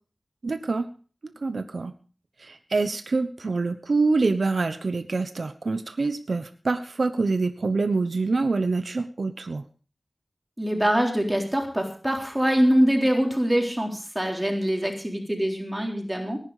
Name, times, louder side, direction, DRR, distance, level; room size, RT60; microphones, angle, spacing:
voice 1, 0.4-0.9 1.2-1.9 2.4-9.6, right 3 dB, 80° right, 8 dB, 1.0 m, -26 dB
voice 2, 10.6-16.4, equal, 15° right, 2 dB, 3.8 m, -24 dB
19.0 x 10.5 x 4.9 m, 0.39 s
wide cardioid pair, 55°, 0 cm